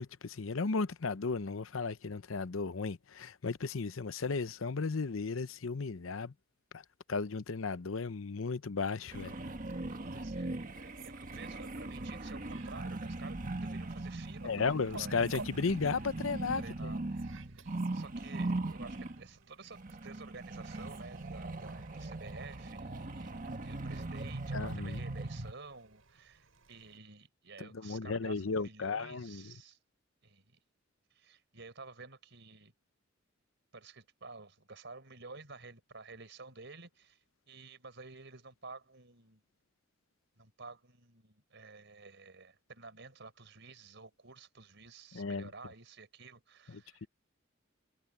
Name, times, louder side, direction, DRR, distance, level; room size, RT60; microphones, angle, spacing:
voice 1, 0.0-6.3 6.7-6.8 7.1-9.3 14.4-16.9 24.5-25.0 27.6-29.4 45.1-45.5 46.7-47.1, left 4 dB, 75° left, 0.7 m, -35 dB
Fowl, 9.0-27.0, right 4 dB, 85° right, 5.4 m, -57 dB
sound 1, 9.1-19.3 19.7-25.5, right 2 dB, 40° right, 1.6 m, -40 dB
voice 2, 10.1-15.5 16.6-29.8 30.2-30.6 31.1-32.7 33.7-39.4 40.3-47.1, right 4 dB, 60° right, 4.7 m, -52 dB
head